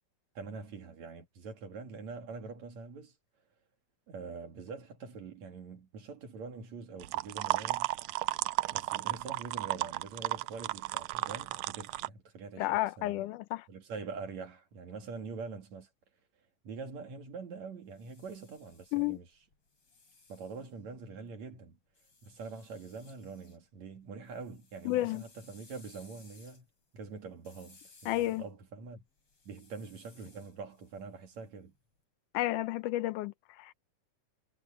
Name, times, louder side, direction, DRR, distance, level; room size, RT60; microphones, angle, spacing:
voice 1, 0.4-3.1 4.1-8.0 8.7-13.2 13.7-15.9 16.6-19.3 20.3-21.8 22.2-26.7 26.9-29.0 29.5-31.7, right 4 dB, 60° right, 3.5 m, -44 dB
sound 1, 7.0-12.1, right 19 dB, 85° right, 1.5 m, -33 dB
voice 2, 12.6-13.7 18.9-19.2 24.9-25.2 28.1-28.4 32.3-33.7, left 17 dB, 80° left, 2.1 m, -31 dB
sound 2, 17.7-21.3 21.9-23.6 23.9-31.9, left 4 dB, 45° left, 6.4 m, -62 dB
omnidirectional pair, 3.7 m